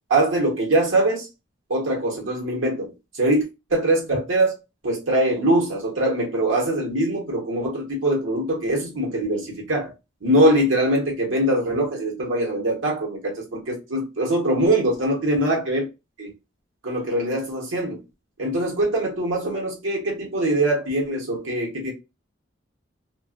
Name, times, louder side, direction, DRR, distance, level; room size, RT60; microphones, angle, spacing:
voice 1, 0.1-1.3 1.7-3.4 3.7-4.6 4.8-9.9 10.2-15.9 16.2-16.3 16.8-18.0 18.4-21.9, right 1 dB, 75° right, 1.1 m, -22 dB
2.5 x 2.5 x 2.4 m
head